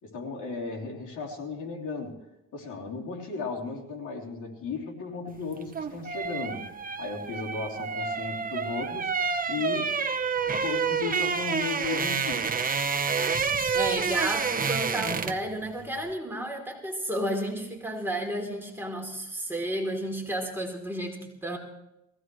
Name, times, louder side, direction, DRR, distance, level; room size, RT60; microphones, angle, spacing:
voice 1, 0.0-6.7 7.0-9.2 9.5-10.0 10.6-12.7, left 4 dB, 80° left, -2 dB, 3.4 m, -35 dB
sound 1, 5.5-15.5 15.8-16.0, right 5 dB, 30° right, 1.0 m, -29 dB
voice 2, 13.7-21.6, right 1 dB, 5° right, 0 dB, 3.2 m, -32 dB
21.0 x 16.5 x 3.2 m, 0.89 s
cardioid pair, 90°, 30 cm